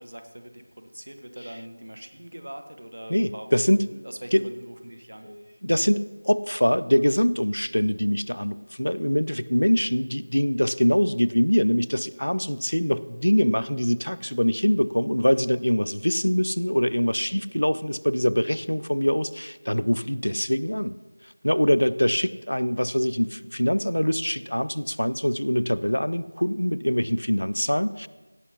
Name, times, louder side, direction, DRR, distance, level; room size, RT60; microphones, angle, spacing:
voice 1, 0.0-3.5 3.9-5.3, right 1 dB, 55° right, 7 dB, 1.3 m, -42 dB
voice 2, 3.1-3.8 4.3-4.5 5.2-21.0 21.4-28.1, equal, 75° left, 17 dB, 0.4 m, -23 dB
16.5 x 5.7 x 5.7 m, 1.3 s
figure-of-eight pair, 175°, 0 cm